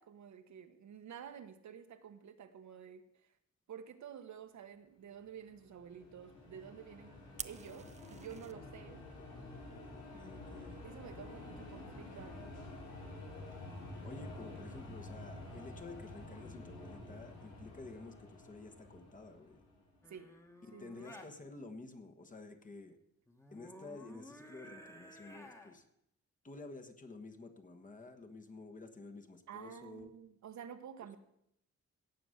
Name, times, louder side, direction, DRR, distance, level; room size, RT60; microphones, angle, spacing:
voice 1, 0.0-3.3 3.7-7.2 7.4-9.1 10.8-12.5 20.1-20.3 20.7-21.1 29.5-31.2, right 8 dB, 70° right, 8 dB, 1.1 m, -51 dB
sound 1, 5.5-20.0, left 2 dB, 85° left, 5.2 m, -49 dB
Fire, 7.4-8.5, right 5 dB, 25° right, 0.4 m, -47 dB
voice 2, 10.1-10.8 14.0-19.6 20.7-23.0 23.5-25.8 26.4-30.1, left 3 dB, 25° left, 5 dB, 1.3 m, -51 dB
sound 2, 20.0-21.3 23.3-25.8 29.8-30.1, left 1 dB, 10° left, 1.4 m, -54 dB
17.0 x 6.9 x 6.5 m, 0.76 s
wide cardioid pair, 130°, 30 cm